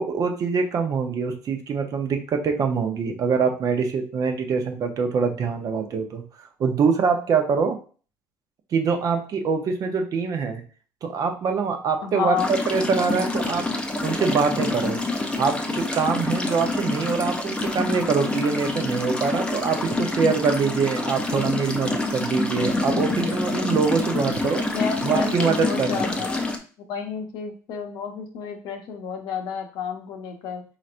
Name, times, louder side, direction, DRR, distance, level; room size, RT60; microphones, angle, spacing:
voice 1, 0.0-6.2 6.6-7.8 8.7-10.6 11.0-13.6 14.0-15.0 15.4-24.6 25.0-25.9, right 5 dB, 50° right, 5 dB, 0.7 m, -24 dB
voice 2, 12.0-12.5 24.7-26.4 26.9-30.6, left 6 dB, 65° left, 4 dB, 0.9 m, -30 dB
sound 1, 12.4-26.6, left 2 dB, 10° left, 0.6 m, -27 dB
4.3 x 3.1 x 2.5 m, 0.39 s
supercardioid pair, 80°, 8 cm